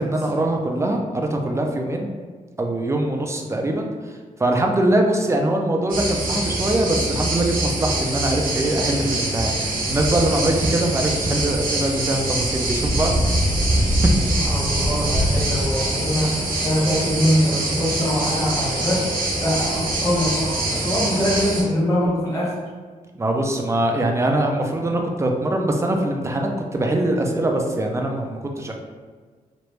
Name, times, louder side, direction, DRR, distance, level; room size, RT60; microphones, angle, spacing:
voice 1, 0.0-2.1 2.6-13.3 13.7-13.8 23.1-28.7, right 1 dB, 20° right, 2 dB, 0.4 m, -23 dB
sound 1, 5.9-21.6, right 1 dB, 85° right, 1.0 m, -23 dB
voice 2, 14.5-19.1 19.4-22.6, equal, 20° left, -8 dB, 1.3 m, -23 dB
3.1 x 2.5 x 3.1 m, 1.5 s
wide cardioid pair, 125°, 14 cm